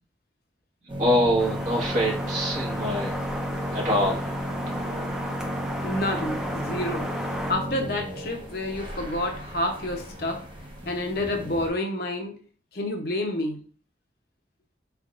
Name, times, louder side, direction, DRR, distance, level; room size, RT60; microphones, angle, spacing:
sound 1, 0.9-11.7, equal, 30° right, 0.9 m, -34 dB
voice 1, 1.0-3.1 3.7-4.5, equal, 45° right, 1.6 m, -25 dB
sound 2, 1.4-7.5, equal, 5° right, 0.5 m, -34 dB
voice 2, 5.8-10.5 10.8-12.4 12.7-13.7, left 1 dB, 60° left, 0.8 m, -29 dB
4.4 x 3.5 x 2.5 m
head